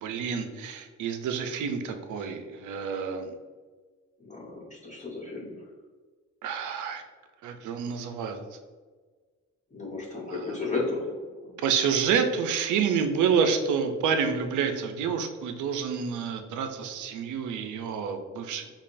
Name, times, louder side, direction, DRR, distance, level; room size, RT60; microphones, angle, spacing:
voice 1, 0.0-3.3 6.4-7.0 7.4-8.4 10.3-10.6 11.6-18.7, right 6 dB, 80° right, 6 dB, 0.6 m, -28 dB
voice 2, 4.2-5.6 9.7-11.6, left 3 dB, 25° left, -4 dB, 1.3 m, -34 dB
5.1 x 2.4 x 2.6 m, 1.4 s
cardioid pair, 90°, 30 cm